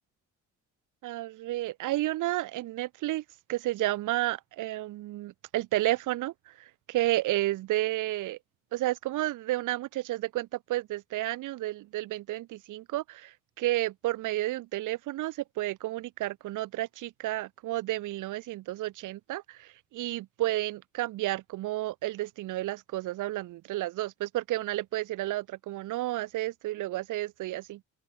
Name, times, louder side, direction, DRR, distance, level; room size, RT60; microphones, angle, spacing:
voice 1, 1.0-3.2 3.5-6.3 6.9-8.4 8.7-13.3 13.6-27.8, right 16 dB, 85° right, 1.2 m, -31 dB
open air
cardioid pair, 90°, 30 cm